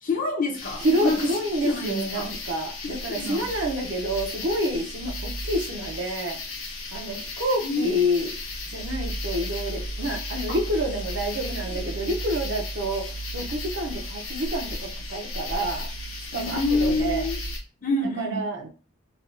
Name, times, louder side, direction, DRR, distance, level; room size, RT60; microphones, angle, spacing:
voice 1, 0.0-1.2 1.6-2.3 2.8-3.5 7.6-8.0 10.5-10.6 11.7-11.8 16.3-17.4 17.8-18.5, left 2 dB, 40° left, 0 dB, 0.7 m, -27 dB
sound 1, 0.5-17.6, left 1 dB, 80° left, 0.9 m, -34 dB
voice 2, 0.8-6.4 6.9-8.3 8.7-13.1 13.3-15.9 16.3-17.3 18.2-18.7, equal, 60° right, 2 dB, 0.6 m, -28 dB
3.3 x 2.2 x 2.5 m, 0.36 s
head